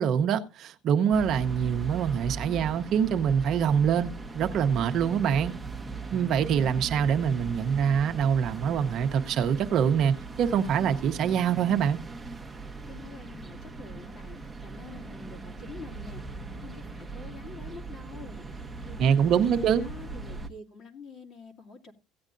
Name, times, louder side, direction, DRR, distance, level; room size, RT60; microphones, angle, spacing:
voice 1, 0.0-5.5 6.1-12.0 19.0-19.8, right 8 dB, 50° right, 0.9 m, -25 dB
sound 1, 1.1-20.5, right 4 dB, 5° right, 0.9 m, -39 dB
voice 2, 12.9-18.4 18.8-21.9, left 4 dB, 45° left, 2.3 m, -47 dB
16.5 x 8.7 x 2.6 m
cardioid pair, 130°, 0 cm